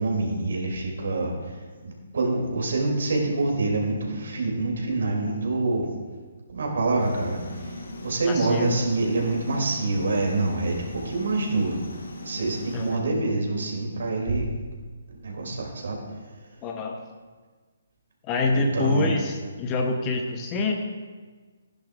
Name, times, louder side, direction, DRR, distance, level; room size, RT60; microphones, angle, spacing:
voice 1, 0.0-1.3 1.8-5.9 6.5-7.7 8.0-11.8 12.2-14.5 15.2-16.0 18.5-19.2, right 2 dB, 60° right, 0 dB, 3.1 m, -26 dB
sound 1, 7.0-13.0, left 1 dB, 60° left, 1.9 m, -39 dB
voice 2, 8.3-8.7 12.7-13.0 16.6-17.0 18.2-20.7, left 3 dB, 25° left, 3 dB, 1.0 m, -26 dB
15.5 x 10.5 x 2.6 m, 1.4 s
figure-of-eight pair, 135°, 0 cm